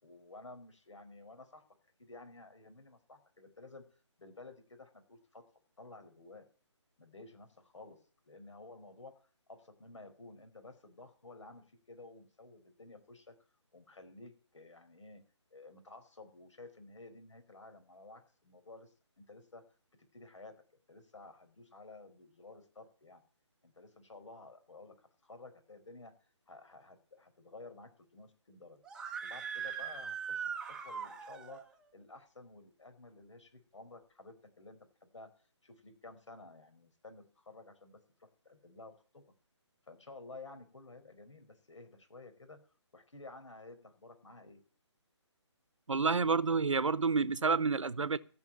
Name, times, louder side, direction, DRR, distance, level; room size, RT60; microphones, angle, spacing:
voice 1, 0.0-1.6 2.0-5.4 5.8-6.4 7.0-8.0 8.2-9.2 9.5-13.3 13.7-15.2 15.5-19.6 20.1-20.6 20.9-23.2 23.6-26.1 26.5-28.8 29.2-31.6 31.9-35.3 35.6-39.2 39.9-42.6 42.9-44.6, left 3 dB, 80° left, 4.8 m, -53 dB
Screaming, 28.8-31.6, right 7 dB, 5° right, 0.8 m, -40 dB
voice 2, 45.9-48.2, right 4 dB, 85° right, 1.0 m, -29 dB
15.5 x 6.3 x 8.8 m
figure-of-eight pair, 160°, 15 cm